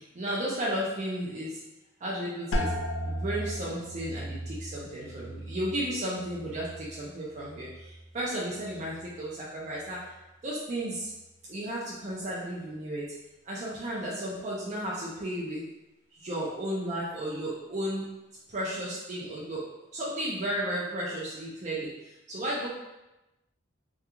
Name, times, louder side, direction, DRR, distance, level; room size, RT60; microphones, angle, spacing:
voice 1, 0.2-1.6 2.0-2.7 3.0-10.0 10.4-11.1 11.5-13.0 13.5-15.6 16.2-18.1 18.5-19.7 19.9-21.9 22.3-22.7, right 1 dB, 40° right, -6 dB, 0.4 m, -33 dB
sound 1, 2.5-8.1 8.5-9.2 9.7-10.1, equal, 85° left, 0.4 m, -36 dB
2.3 x 2.3 x 2.9 m, 0.99 s
head